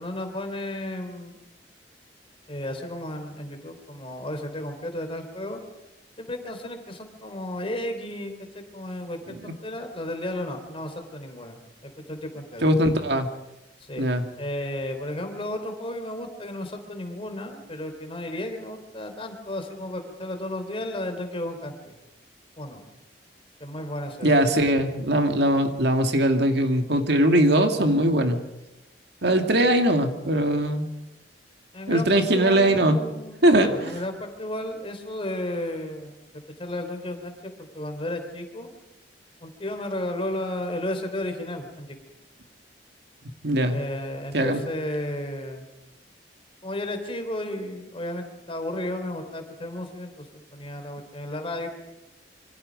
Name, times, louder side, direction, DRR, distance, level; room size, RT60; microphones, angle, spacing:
voice 1, 0.0-1.4 2.5-5.6 6.2-11.6 11.8-12.7 13.8-14.0 14.4-21.9 22.6-22.8 23.6-24.3 31.7-36.1 36.6-38.7 39.4-42.0 43.7-45.7 46.6-50.3 50.5-51.7, left 1 dB, 30° left, 6 dB, 3.6 m, -33 dB
voice 2, 12.6-13.3 14.0-14.2 24.2-28.4 29.2-30.9 31.9-33.0 33.4-33.9 43.4-43.8 44.3-44.6, right 1 dB, 65° right, 6 dB, 2.3 m, -21 dB
26.5 x 24.5 x 5.3 m, 0.93 s
head